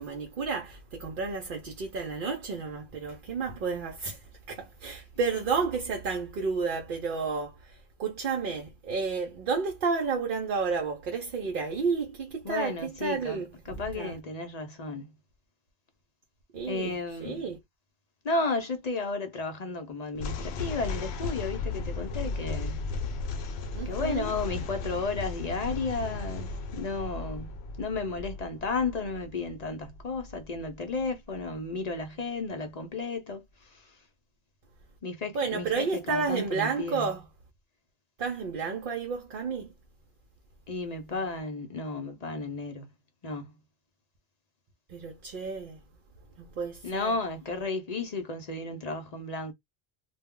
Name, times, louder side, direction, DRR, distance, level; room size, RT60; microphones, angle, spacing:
voice 1, 0.0-14.2 16.5-17.6 23.7-24.3 35.3-37.3 38.2-39.7 44.9-45.8 46.4-47.2, right 5 dB, 60° right, 0.7 m, -31 dB
voice 2, 12.4-13.4 13.7-15.1 16.7-17.4 18.2-22.8 23.9-27.5 27.8-33.9 35.0-37.1 40.7-42.9 43.2-43.5 46.8-49.5, left 3 dB, 50° left, 0.6 m, -33 dB
sound 1, 20.2-31.5, left 3 dB, 80° left, 0.8 m, -36 dB
2.3 x 2.1 x 3.5 m
omnidirectional pair, 1.1 m